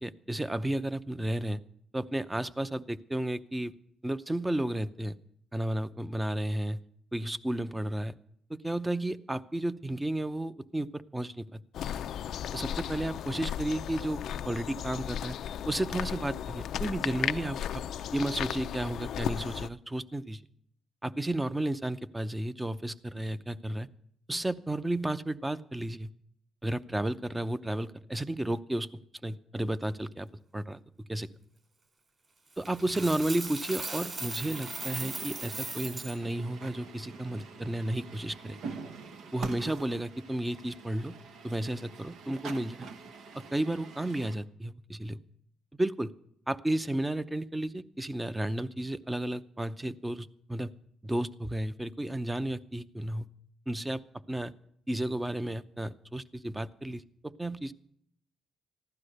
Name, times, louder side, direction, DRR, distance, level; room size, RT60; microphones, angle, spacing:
voice 1, 0.0-1.6 1.9-3.7 4.0-5.2 5.5-6.8 7.1-8.1 8.5-11.6 12.5-15.4 15.7-17.8 18.1-20.4 21.0-23.9 24.3-26.1 26.6-28.9 29.2-30.3 30.5-30.8 31.1-31.3 32.6-38.6 39.3-41.1 41.4-42.9 43.3-45.2 45.7-46.1 46.5-50.7 51.0-53.3 53.7-54.0 54.3-54.5 54.9-57.7, right 1 dB, 10° right, 14 dB, 0.7 m, -33 dB
sound 1, 11.7-19.7, left 10 dB, 70° left, 0.5 m, -35 dB
Coin (dropping), 32.6-36.1, right 3 dB, 35° right, 4.1 m, -38 dB
Truck, 34.1-44.4, right 5 dB, 75° right, 1.2 m, -45 dB
15.0 x 11.5 x 6.5 m, 0.69 s
cardioid pair, 90°, 0 cm